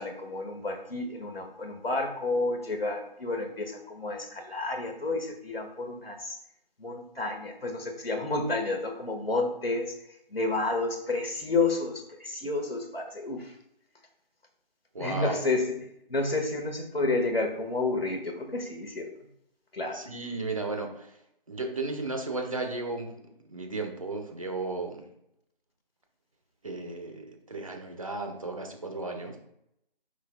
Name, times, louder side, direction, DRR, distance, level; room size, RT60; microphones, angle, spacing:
voice 1, 0.0-6.4 6.8-9.9 10.3-13.5 15.0-15.8 16.1-19.1 19.7-20.0, left 3 dB, 85° left, 3 dB, 1.9 m, -30 dB
voice 2, 14.9-15.5 19.9-21.1 21.5-23.2 23.5-25.1 26.6-29.4, right 2 dB, 35° right, 4 dB, 1.2 m, -34 dB
9.4 x 6.0 x 2.4 m, 0.77 s
figure-of-eight pair, 170°, 29 cm